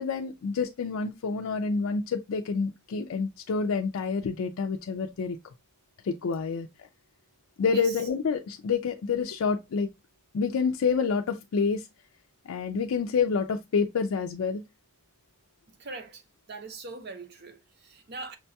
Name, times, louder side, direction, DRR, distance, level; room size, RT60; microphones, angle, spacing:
voice 1, 0.0-5.4 6.0-6.7 7.6-9.9 10.3-11.9 12.5-14.6, left 5 dB, 80° left, 0.4 m, -28 dB
voice 2, 7.7-8.1 15.7-16.2 16.5-18.4, right 3 dB, 50° right, 0.7 m, -41 dB
5.9 x 2.2 x 2.7 m
head